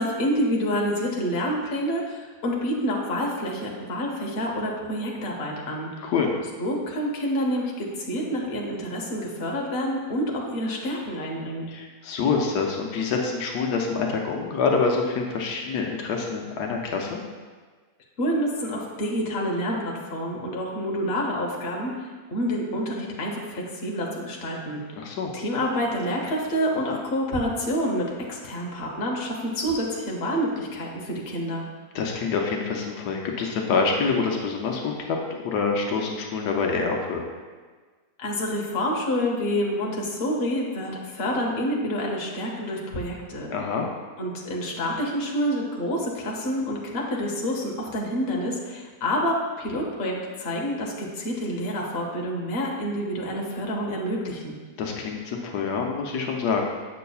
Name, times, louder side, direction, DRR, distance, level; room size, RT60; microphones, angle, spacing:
voice 1, 0.0-6.1 6.6-11.7 18.2-31.6 38.2-43.5 44.2-54.6, equal, 45° left, -1 dB, 1.1 m, -28 dB
voice 2, 11.7-17.2 25.0-25.3 31.9-37.3 43.5-43.9 54.8-56.6, left 5 dB, 80° left, 1 dB, 1.2 m, -26 dB
7.4 x 6.6 x 2.3 m, 1.4 s
omnidirectional pair, 1.7 m